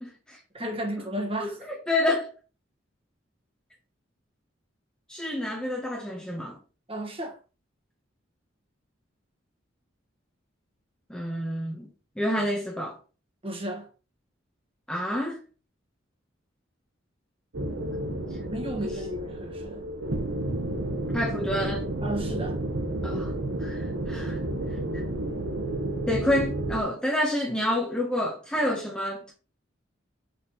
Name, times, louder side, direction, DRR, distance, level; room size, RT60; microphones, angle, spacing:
voice 1, 0.0-0.4 1.4-2.3 5.1-6.6 11.1-11.9 12.2-13.0 14.9-15.4 17.8-18.0 18.8-19.0 21.1-21.8 23.0-23.3 23.6-24.4 24.9-25.0 26.1-29.3, left 1 dB, 5° left, 1.0 m, -28 dB
voice 2, 0.5-1.7 6.9-7.4 13.4-13.9 18.5-19.8 22.0-22.6, equal, 30° right, 1.5 m, -33 dB
sound 1, 17.5-26.8, right 1 dB, 80° right, 1.2 m, -31 dB
6.4 x 5.4 x 3.0 m
head